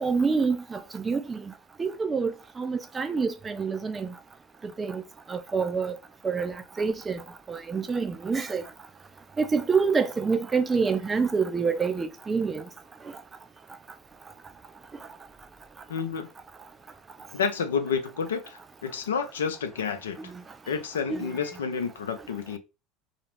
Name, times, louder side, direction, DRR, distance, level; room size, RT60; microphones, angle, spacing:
voice 1, 0.0-1.4 1.8-2.3 2.6-4.1 4.8-5.0 5.3-5.9 6.2-7.2 7.5-8.6 9.4-12.6 21.1-21.3, right 5 dB, 25° right, 0.3 m, -27 dB
voice 2, 15.9-16.3 17.3-20.2 20.7-22.6, left 6 dB, 90° left, 0.5 m, -30 dB
2.4 x 2.0 x 3.0 m
hypercardioid pair, 85°, 0 cm